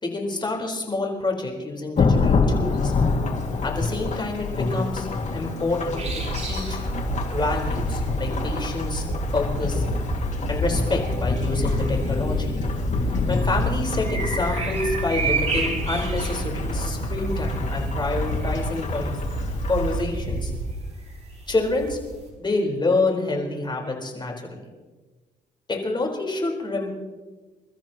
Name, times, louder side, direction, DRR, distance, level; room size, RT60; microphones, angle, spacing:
voice 1, 0.0-2.9 3.6-6.8 7.3-9.0 9.3-9.8 10.5-12.6 13.3-19.2 19.7-20.5 21.5-22.0 22.4-24.6 25.7-26.9, left 2 dB, 30° left, 0 dB, 4.6 m, -27 dB
Thunderstorm / Rain, 2.0-20.0, left 4 dB, 50° left, 2.4 m, -27 dB
sound 1, 6.0-22.3, right 3 dB, 45° right, 6.5 m, -30 dB
28.5 x 13.5 x 3.1 m, 1.3 s
cardioid pair, 85°, 16 cm